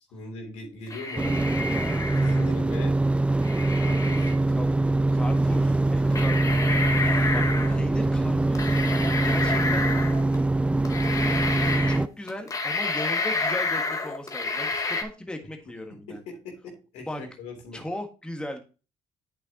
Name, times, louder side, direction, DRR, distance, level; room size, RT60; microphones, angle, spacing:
voice 1, 0.1-1.5 1.8-3.0 3.8-4.3 15.9-17.8, left 2 dB, 85° left, 2 dB, 3.3 m, -40 dB
sound 1, 0.9-2.5 3.4-4.3 5.5-5.6 6.1-7.8 8.5-10.4 10.8-12.0 12.3-15.0, left 3 dB, 30° left, 1.6 m, -29 dB
sound 2, 1.2-12.1, right 2 dB, 10° right, 0.3 m, -23 dB
voice 2, 4.5-4.8 5.1-8.8 9.2-9.9 11.8-16.2 17.1-17.2 17.7-18.6, left 1 dB, 10° left, 4 dB, 1.6 m, -37 dB
8.5 x 6.7 x 2.9 m, 0.33 s
supercardioid pair, 75°, 11 cm